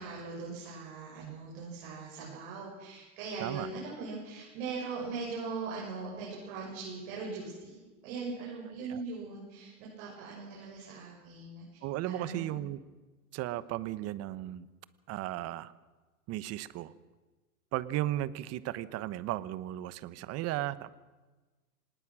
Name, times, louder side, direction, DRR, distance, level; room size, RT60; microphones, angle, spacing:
voice 1, 0.0-12.5, right 4 dB, 55° right, -4 dB, 7.7 m, -40 dB
voice 2, 11.8-12.8 13.3-14.7 15.1-15.7 16.3-16.9 17.7-20.9, right 14 dB, 35° right, 16 dB, 1.1 m, -35 dB
26.0 x 19.5 x 6.2 m, 1.2 s
hypercardioid pair, 125°, 44 cm